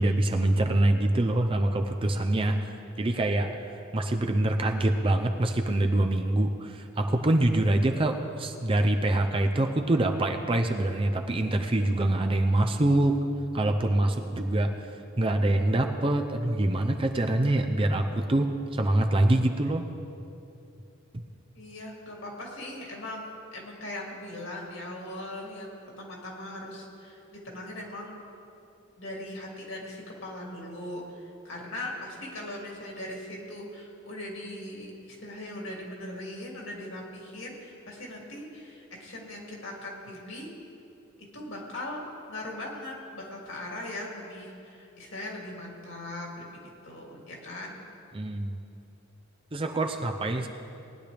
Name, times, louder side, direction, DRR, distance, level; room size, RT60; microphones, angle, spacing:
voice 1, 0.0-2.7 3.0-13.2 13.5-14.7 15.2-19.8 48.1-48.6 49.5-50.5, right 1 dB, 25° right, 4 dB, 0.5 m, -25 dB
voice 2, 21.5-28.2 29.0-40.5 41.2-47.8, left 1 dB, 65° left, -2 dB, 2.6 m, -40 dB
19.0 x 10.0 x 3.4 m, 2.7 s
head